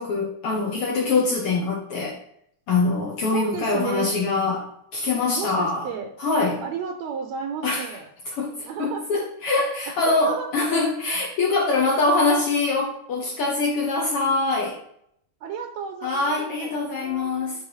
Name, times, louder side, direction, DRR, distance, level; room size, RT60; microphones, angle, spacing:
voice 1, 0.0-2.2 2.7-5.9 6.2-6.6 7.6-7.8 8.4-14.8 16.0-17.5, left 3 dB, 65° left, -2 dB, 1.6 m, -24 dB
voice 2, 3.3-4.1 5.4-6.1 6.6-8.1 8.6-9.1 10.0-10.5 15.4-17.5, right 7 dB, 75° right, 5 dB, 1.8 m, -33 dB
8.6 x 3.5 x 4.4 m, 0.72 s
omnidirectional pair, 3.4 m